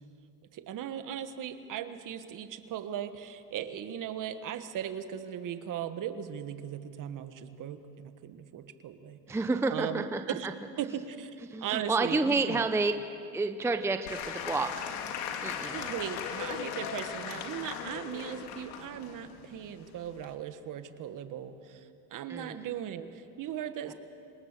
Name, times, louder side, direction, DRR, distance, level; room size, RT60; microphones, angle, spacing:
voice 1, 0.5-9.2 9.7-10.5 10.8-11.4 11.6-12.6 15.7-21.9 22.1-23.9, right 9 dB, 45° right, 10 dB, 1.5 m, -38 dB
voice 2, 9.3-10.5 11.5-12.9 13.3-15.1 15.4-15.7 22.3-22.6, right 3 dB, 5° right, 8 dB, 0.7 m, -30 dB
Applause / Crowd, 14.1-20.4, left 8 dB, 80° left, 2.3 m, -38 dB
26.0 x 19.5 x 6.8 m, 2.5 s
supercardioid pair, 115°, 45 cm